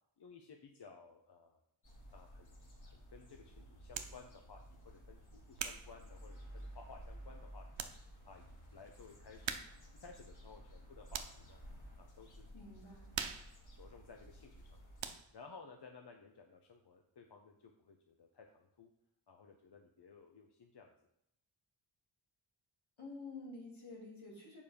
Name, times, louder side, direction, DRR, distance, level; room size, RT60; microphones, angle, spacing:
voice 1, 0.2-1.6 2.1-2.6 2.8-7.8 8.2-9.5 9.9-11.6 12.0-12.5 13.2-13.4 13.7-14.9 15.3-18.9 19.3-20.9, left 4 dB, 55° left, 3 dB, 0.9 m, -57 dB
sound 1, 1.8-15.1, equal, 40° left, 2.5 m, -54 dB
sound 2, 3.9-4.2 4.9-6.9 7.4-7.5 7.7-8.0 8.3-8.4 9.4-9.9 10.2-11.5 12.0-12.3 12.6-14.7 15.0-15.5, right 7 dB, 70° right, 0.8 m, -44 dB
voice 2, 12.5-13.2 23.0-24.6, left 3 dB, 75° left, -3 dB, 2.8 m, -49 dB
7.0 x 5.2 x 5.1 m, 0.78 s
cardioid pair, 55°, 47 cm